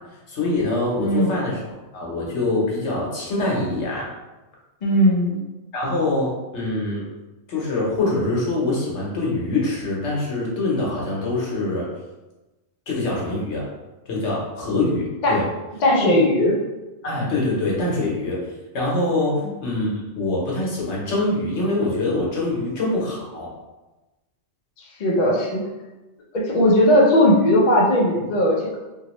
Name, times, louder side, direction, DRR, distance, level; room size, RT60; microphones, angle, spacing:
voice 1, 0.3-1.6 1.9-4.1 5.7-7.0 7.5-11.9 12.9-13.7 14.1-15.4 16.0-16.2 17.0-18.4 18.7-23.5, left 2 dB, 70° left, -4 dB, 1.2 m, -24 dB
voice 2, 1.0-1.3 4.8-5.4 15.2-15.4 15.8-16.6 19.2-19.5 25.0-25.6 26.3-28.8, left 1 dB, 50° left, -3 dB, 0.6 m, -18 dB
3.0 x 2.7 x 3.0 m, 1.1 s
omnidirectional pair, 1.2 m